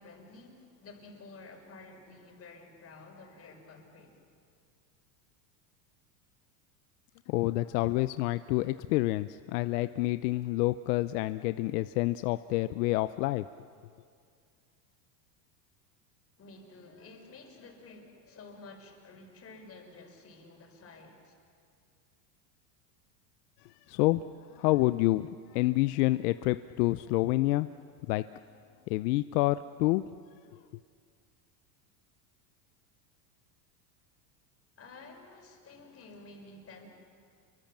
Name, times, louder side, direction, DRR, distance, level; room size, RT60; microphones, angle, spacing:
voice 1, 0.0-4.2 16.4-21.3 34.8-36.9, left 3 dB, 30° left, 2 dB, 5.6 m, -51 dB
voice 2, 7.3-13.4 23.9-24.2 24.5-27.7 28.1-28.2 28.9-30.0, left 18 dB, 70° left, 13 dB, 0.7 m, -28 dB
29.0 x 24.0 x 7.4 m, 2.2 s
supercardioid pair, 120°, 49 cm